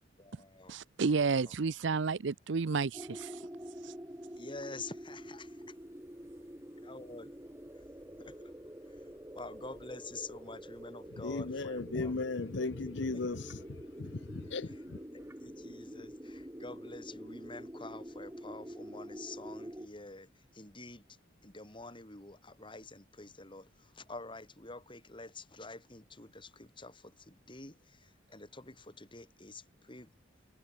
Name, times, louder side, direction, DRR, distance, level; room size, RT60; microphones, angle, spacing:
voice 1, 0.2-0.8 1.3-1.5 4.4-5.5 6.8-7.3 7.8-7.9 8.2-8.5 8.9-9.1 9.3-12.1 13.1-13.2 15.1-21.2 21.4-30.1, left 3 dB, 25° left, 4.7 m, -48 dB
voice 2, 0.7-3.4 3.8-3.9, right 4 dB, 65° right, 0.6 m, -31 dB
sound 1, 2.9-19.9, equal, 15° right, 2.7 m, -47 dB
voice 3, 11.1-15.0, left 3 dB, 65° left, 0.8 m, -37 dB
head